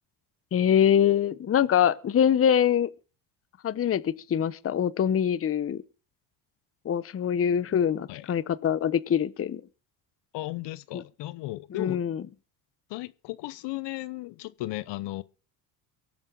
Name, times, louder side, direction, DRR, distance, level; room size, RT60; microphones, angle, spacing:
voice 1, 0.5-2.9 3.6-5.8 6.8-9.6 10.9-11.0 11.7-12.2, left 9 dB, 30° left, 0.8 m, -24 dB
voice 2, 10.3-12.0 12.9-15.2, left 17 dB, 60° left, 0.8 m, -35 dB
24.0 x 8.7 x 3.9 m
supercardioid pair, 80°, 47 cm